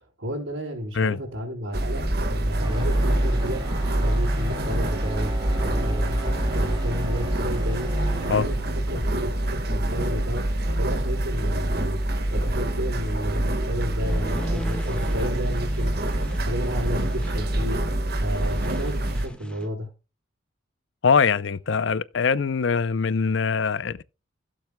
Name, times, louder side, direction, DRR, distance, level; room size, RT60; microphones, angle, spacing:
voice 1, 0.2-3.7 4.0-5.3 5.6-12.0 12.3-15.9 16.3-17.8 18.2-19.9, equal, 75° right, 3.9 m, -32 dB
sound 1, 1.7-19.3, right 1 dB, 50° right, 1.5 m, -26 dB
sound 2, 2.6-10.7, right 1 dB, 25° right, 2.8 m, -29 dB
sound 3, 14.0-19.7, equal, 5° left, 1.5 m, -39 dB
voice 2, 21.0-24.0, left 5 dB, 65° left, 0.5 m, -22 dB
17.0 x 7.6 x 2.2 m
head